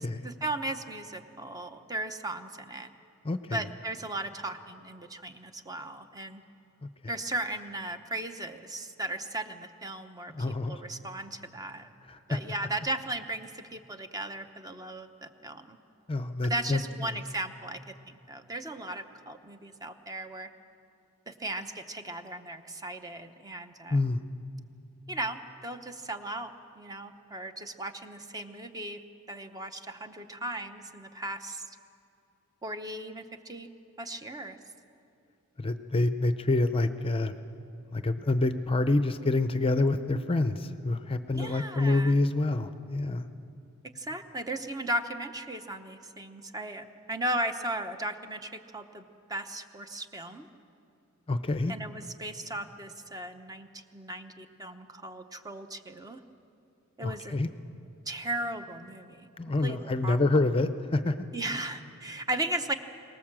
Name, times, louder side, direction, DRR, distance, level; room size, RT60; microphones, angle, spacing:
voice 1, 0.0-2.9 3.5-6.4 7.1-11.9 12.3-15.8 16.4-20.5 21.3-24.1 25.1-29.0 29.3-31.8 32.6-33.7 34.0-34.6 41.3-42.2 43.9-50.5 51.7-56.2 57.0-57.4 58.1-59.3 59.6-60.4 61.3-62.7, right 1 dB, 15° right, 8 dB, 0.9 m, -36 dB
voice 2, 3.2-3.6 6.8-6.9 10.3-10.8 12.1-12.4 16.1-17.1 23.9-24.2 35.6-37.3 37.9-43.3 51.3-51.7 57.0-57.5 59.4-61.2, left 2 dB, 25° left, 10 dB, 0.6 m, -27 dB
23.5 x 19.0 x 7.5 m, 2.7 s
head